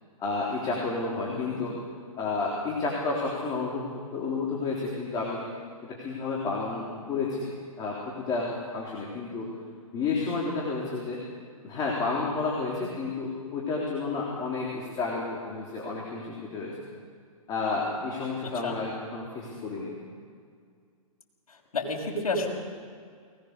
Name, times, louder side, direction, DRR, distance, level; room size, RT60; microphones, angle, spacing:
voice 1, 0.2-1.8 2.2-5.4 5.8-7.5 7.8-9.5 9.9-11.2 11.6-16.8 17.5-19.9, left 3 dB, 20° left, -4 dB, 3.7 m, -31 dB
voice 2, 1.3-1.6 18.4-18.8 21.5-22.5, left 2 dB, 80° left, 0 dB, 6.0 m, -31 dB
21.0 x 20.0 x 6.8 m, 2.1 s
hypercardioid pair, 145°, 19 cm